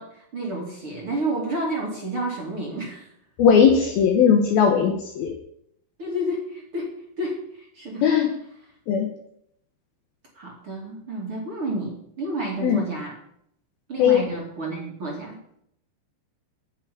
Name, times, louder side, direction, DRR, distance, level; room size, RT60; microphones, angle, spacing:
voice 1, 0.0-3.1 6.0-8.1 10.3-13.2 13.9-15.4, right 1 dB, 35° right, -2 dB, 2.7 m, -30 dB
voice 2, 3.4-5.3 8.0-8.3 8.9-9.1 12.6-12.8 14.0-14.2, left 7 dB, 70° left, 3 dB, 2.5 m, -18 dB
10.0 x 7.1 x 9.3 m, 0.73 s
omnidirectional pair, 5.3 m